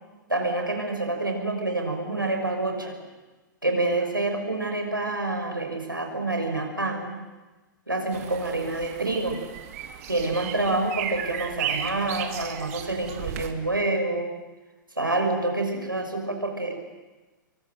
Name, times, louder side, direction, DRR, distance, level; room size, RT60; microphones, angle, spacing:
voice 1, 0.3-3.0 3.6-7.2 7.9-9.4 10.1-14.3 15.0-16.8, right 2 dB, 85° right, 3 dB, 5.7 m, -27 dB
sound 1, 8.1-13.5, right 9 dB, 45° right, 2.3 m, -35 dB
26.5 x 24.0 x 7.8 m, 1.2 s
figure-of-eight pair, 105°, 11 cm